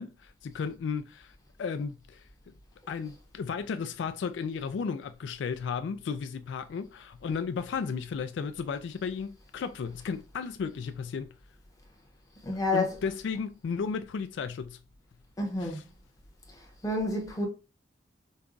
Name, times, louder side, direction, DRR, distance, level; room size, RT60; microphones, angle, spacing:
voice 1, 0.0-1.3 1.6-2.2 2.9-11.3 12.7-14.8 15.6-15.8, left 5 dB, 75° left, 0.3 m, -34 dB
voice 2, 12.4-12.9 15.4-15.8 16.8-17.5, left 2 dB, 20° left, 1.0 m, -29 dB
5.3 x 2.3 x 2.5 m
head